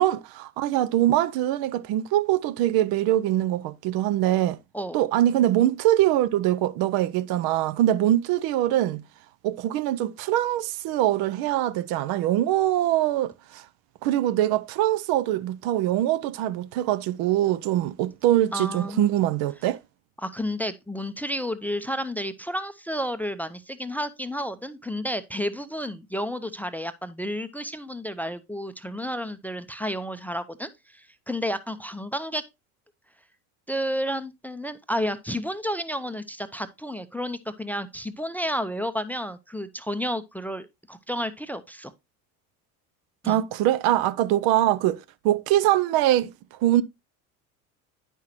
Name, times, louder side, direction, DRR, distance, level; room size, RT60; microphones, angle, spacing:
voice 1, 0.0-4.6 4.9-9.0 9.4-13.6 14.0-19.8 43.2-46.3 46.6-46.8, right 13 dB, 55° right, 0.6 m, -23 dB
voice 2, 18.5-19.1 20.2-32.5 33.7-41.9 43.2-43.4, equal, 5° left, 0.5 m, -31 dB
9.8 x 5.6 x 3.0 m
hypercardioid pair, 70°, 43 cm